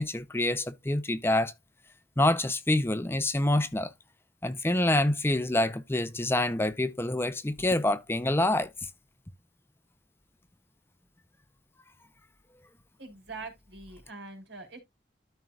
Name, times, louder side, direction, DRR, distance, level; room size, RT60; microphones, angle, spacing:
voice 1, 0.0-1.5 2.2-3.9 4.4-8.9, left 1 dB, 15° left, 0.6 m, -26 dB
voice 2, 13.0-14.8, right 3 dB, 75° right, 4.1 m, -43 dB
13.5 x 4.6 x 2.4 m
head